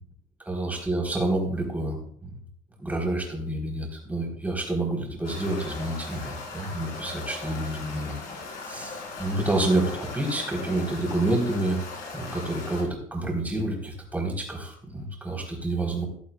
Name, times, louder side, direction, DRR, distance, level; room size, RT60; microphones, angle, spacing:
voice 1, 0.5-2.4 2.8-8.2 8.7-11.8 12.1-16.1, right 2 dB, 10° right, -1 dB, 4.0 m, -28 dB
sound 1, 5.2-12.8, left 3 dB, 80° left, 4.9 m, -39 dB
15.5 x 11.0 x 2.4 m, 0.62 s
cardioid pair, 125°, 14 cm